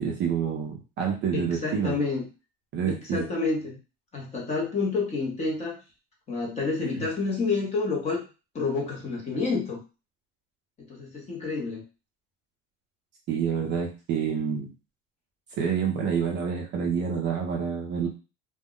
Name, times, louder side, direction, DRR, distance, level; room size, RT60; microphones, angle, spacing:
voice 1, 0.0-2.0 2.7-3.2 6.9-7.1 13.3-14.7 15.6-18.1, right 7 dB, 35° right, 0 dB, 0.5 m, -28 dB
voice 2, 1.3-2.2 2.9-3.8 4.1-5.8 6.3-8.2 8.5-9.8 10.8-11.8, left 4 dB, 20° left, -2 dB, 0.7 m, -29 dB
2.2 x 2.0 x 3.6 m, 0.31 s
cardioid pair, 170°, 32 cm